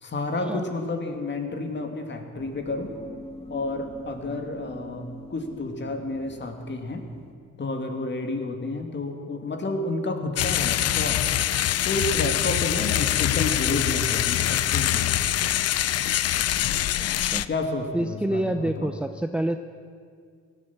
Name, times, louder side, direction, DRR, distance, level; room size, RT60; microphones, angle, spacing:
voice 1, 0.0-2.9 3.5-7.0 7.6-11.3 11.8-15.3 17.5-18.9, left 2 dB, 35° left, 5 dB, 2.1 m, -30 dB
sound 1, 2.3-7.3, left 1 dB, 20° left, 1.8 m, -43 dB
sound 2, 10.4-17.5, left 12 dB, 55° left, 0.5 m, -24 dB
voice 2, 17.0-17.4 17.9-19.6, right 1 dB, 5° right, 7 dB, 0.6 m, -27 dB
17.0 x 12.0 x 7.1 m, 2.1 s
cardioid pair, 90°, 30 cm